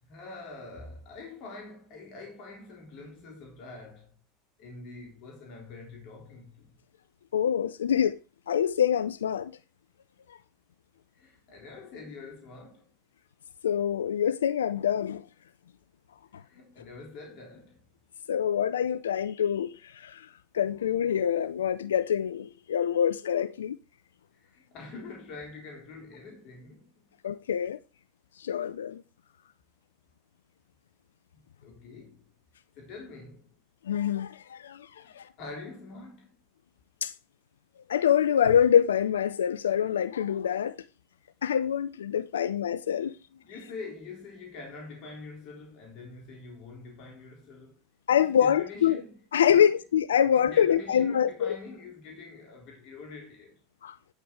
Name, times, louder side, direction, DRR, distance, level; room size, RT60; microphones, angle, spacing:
voice 1, 0.0-4.2 4.6-6.8 11.1-12.9 16.3-17.9 24.3-27.1 31.3-32.2 32.7-33.5 35.0-36.4 43.4-47.8 48.2-49.2 49.5-49.6 50.3-53.6, left 3 dB, 55° left, 4.0 m, -45 dB
voice 2, 7.3-8.2 8.5-9.5 10.3-10.4 13.6-15.2 18.3-23.8 27.2-27.8 28.4-29.0 33.9-35.3 37.0-37.1 37.9-40.8 41.4-43.2 48.1-49.0 49.3-51.6 53.8-54.0, left 9 dB, 85° left, 0.4 m, -25 dB
9.5 x 6.4 x 4.6 m
hypercardioid pair, 85°, 0 cm